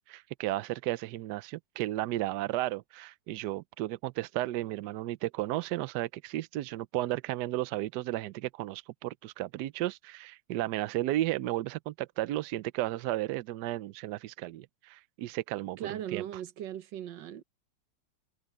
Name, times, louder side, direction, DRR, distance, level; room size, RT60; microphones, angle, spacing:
voice 1, 0.1-16.2, right 15 dB, 80° right, 0.9 m, -34 dB
voice 2, 15.8-17.4, right 11 dB, 65° right, 1.4 m, -38 dB
omnidirectional pair, 2.4 m